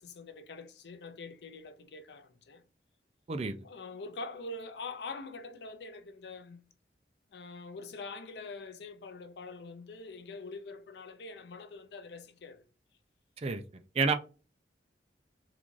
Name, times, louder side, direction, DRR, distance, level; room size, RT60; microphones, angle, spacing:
voice 1, 0.0-2.6 3.6-6.6 7.3-12.7, left 3 dB, 70° left, 0.5 m, -44 dB
voice 2, 3.3-3.6 13.4-13.6 13.9-14.1, right 4 dB, 35° right, 0.4 m, -29 dB
3.8 x 2.4 x 3.0 m
head